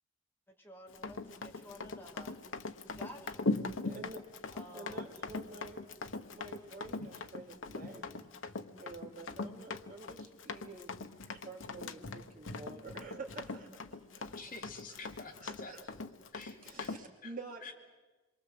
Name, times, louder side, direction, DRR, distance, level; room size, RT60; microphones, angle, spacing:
voice 1, 0.5-2.4 2.9-3.5 4.5-5.1, left 1 dB, 10° left, 1 dB, 2.4 m, -52 dB
Run, 0.9-17.0, left 3 dB, 80° left, 1.2 m, -40 dB
voice 2, 3.8-4.2 4.7-8.3 8.8-14.4 14.9-15.0 15.4-15.9 16.6-17.7, right 3 dB, 45° right, 0 dB, 2.9 m, -49 dB
voice 3, 14.3-15.7 16.3-17.0 17.2-17.3 17.6-17.7, left 4 dB, 40° left, 1 dB, 3.1 m, -48 dB
27.0 x 23.0 x 7.9 m, 1.2 s
head